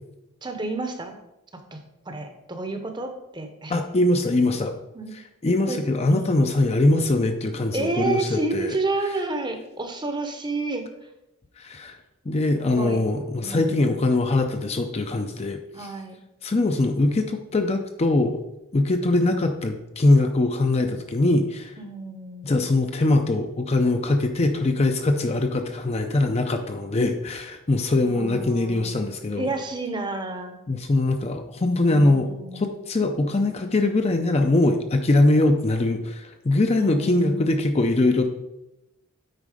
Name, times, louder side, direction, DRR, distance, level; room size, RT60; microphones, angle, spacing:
voice 1, 0.4-1.2 1.5-3.8 4.3-4.4 4.9-5.2 5.7-5.8 6.1-6.4 7.7-10.8 12.8-13.0 13.4-13.8 15.7-16.2 21.8-22.6 28.0-28.9 29.4-30.5 31.8-32.7 36.7-37.6, right 2 dB, 20° right, 6 dB, 0.8 m, -30 dB
voice 2, 3.7-4.7 5.4-8.7 11.6-12.0 12.3-15.9 16.4-18.4 18.7-21.7 22.4-29.5 30.7-38.3, left 2 dB, 30° left, 6 dB, 0.5 m, -22 dB
9.1 x 4.2 x 4.9 m, 0.93 s
head